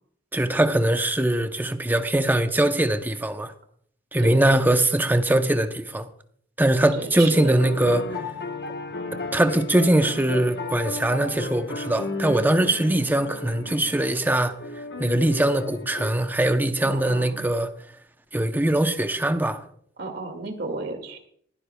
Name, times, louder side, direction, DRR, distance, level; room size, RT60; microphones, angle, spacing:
voice 1, 0.3-3.5 4.1-6.1 6.6-8.1 9.3-14.6 15.0-17.7 18.3-19.6, right 1 dB, 10° right, 0.6 m, -22 dB
voice 2, 4.2-4.6 6.9-7.6 16.8-17.4 20.0-21.2, right 3 dB, 60° right, 2.1 m, -33 dB
sound 1, 7.6-16.1, left 2 dB, 60° left, 1.1 m, -34 dB
20.5 x 11.5 x 2.2 m
head